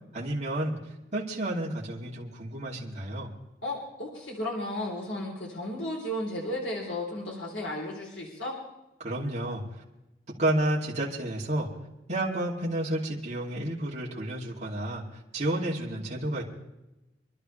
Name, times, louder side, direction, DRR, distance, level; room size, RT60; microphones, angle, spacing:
voice 1, 0.1-0.8 1.1-3.3 9.0-9.8 10.4-11.7 12.1-16.4, right 1 dB, 40° right, -5 dB, 2.8 m, -31 dB
voice 2, 3.6-8.6, left 1 dB, 90° left, -2 dB, 3.4 m, -34 dB
27.0 x 12.0 x 3.3 m, 0.96 s
head